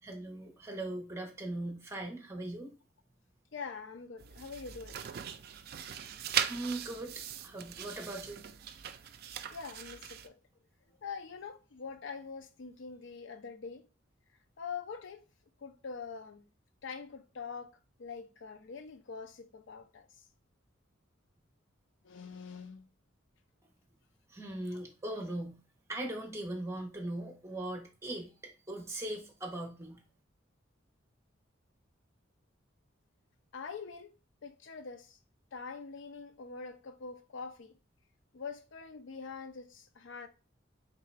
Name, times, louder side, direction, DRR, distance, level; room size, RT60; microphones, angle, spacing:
voice 1, 0.0-2.7 6.5-8.4 24.3-25.6 25.9-30.0, right 1 dB, 15° right, 0.9 m, -40 dB
voice 2, 3.5-5.0 9.5-10.4 11.0-13.8 14.6-15.2 15.6-16.4 16.8-20.1 22.0-22.9 24.7-24.8 33.5-34.1 34.4-35.2 35.5-37.8 38.3-40.3, left 5 dB, 65° left, 0.5 m, -44 dB
sound 1, 4.2-10.3, right 9 dB, 50° right, 0.4 m, -39 dB
3.7 x 3.3 x 3.2 m
head